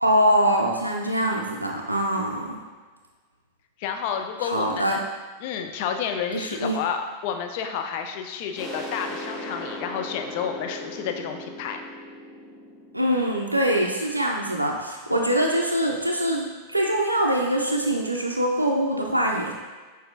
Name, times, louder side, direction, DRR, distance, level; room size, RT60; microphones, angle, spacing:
voice 1, 0.0-2.6 4.4-5.0 6.3-6.8 12.9-19.5, right 1 dB, 85° right, 0 dB, 0.3 m, -23 dB
voice 2, 3.8-5.0 5.4-11.8, left 7 dB, 45° left, 5 dB, 0.4 m, -30 dB
sound 1, 8.6-14.0, left 1 dB, 10° left, 0.8 m, -38 dB
5.9 x 2.6 x 2.5 m, 1.4 s
figure-of-eight pair, 90°, 0 cm